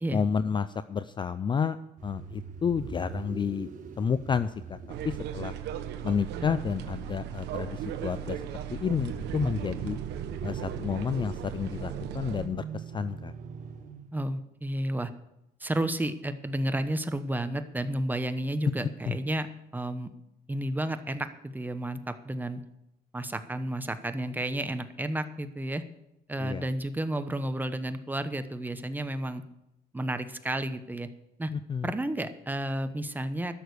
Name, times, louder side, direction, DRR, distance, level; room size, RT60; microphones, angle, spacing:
voice 1, 0.1-1.8 2.0-3.7 4.0-4.8 5.0-5.5 6.0-8.4 8.7-10.0 10.4-13.3 19.1-19.2 26.4-26.6 31.5-31.9, left 6 dB, 30° left, 14 dB, 0.4 m, -30 dB
sound 1, 2.0-14.2, right 5 dB, 50° right, 1.4 m, -43 dB
sound 2, 4.9-12.5, right 10 dB, 85° right, 1.1 m, -37 dB
voice 2, 14.1-15.1 15.6-19.5 19.7-20.1 20.5-22.6 23.1-25.8 26.3-29.4 29.9-31.1 31.4-31.5 31.8-33.5, right 1 dB, 10° right, 10 dB, 1.0 m, -31 dB
13.0 x 6.6 x 8.2 m, 0.85 s
cardioid pair, 110°, 17 cm